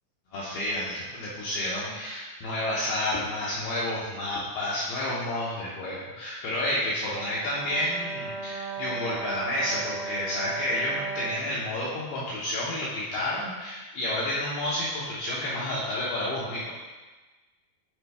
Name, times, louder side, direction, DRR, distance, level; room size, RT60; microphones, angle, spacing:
voice 1, 0.3-16.7, left 1 dB, 75° left, -7 dB, 2.3 m, -30 dB
Brass instrument, 7.1-11.5, right 5 dB, 85° right, 3.1 m, -36 dB
11.5 x 3.9 x 3.4 m, 1.2 s
omnidirectional pair, 5.6 m